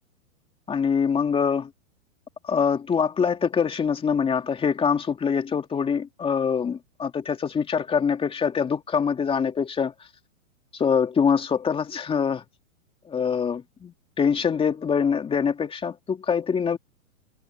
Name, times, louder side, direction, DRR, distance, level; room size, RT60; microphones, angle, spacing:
voice 1, 0.7-1.7 2.4-9.9 10.7-12.4 13.1-16.8, left 6 dB, 15° left, 2.7 m, -24 dB
hypercardioid pair, 140°, 41 cm